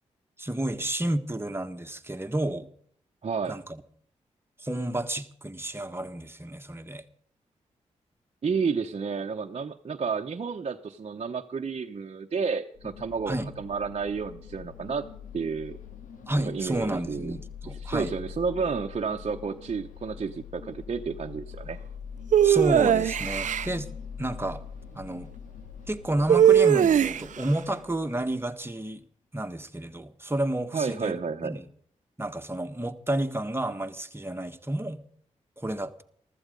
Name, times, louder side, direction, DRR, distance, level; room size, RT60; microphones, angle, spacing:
voice 1, 0.4-2.7 3.5-3.8 4.6-7.0 13.3-13.5 16.3-18.1 22.4-23.9 24.2-24.6 24.9-25.3 25.9-29.0 29.3-31.7 32.2-35.0 35.6-36.0, right 1 dB, 15° right, 7 dB, 1.6 m, -31 dB
voice 2, 3.2-3.6 8.4-15.1 15.3-15.8 16.4-17.3 17.6-21.8 30.7-31.6, right 5 dB, 50° right, 2 dB, 0.9 m, -31 dB
sound 1, 12.7-28.7, left 6 dB, 85° left, 2.6 m, -43 dB
sound 2, 22.3-23.7 26.3-27.4, right 9 dB, 70° right, 0.6 m, -20 dB
14.5 x 13.5 x 5.2 m, 0.62 s
supercardioid pair, 45°, 13 cm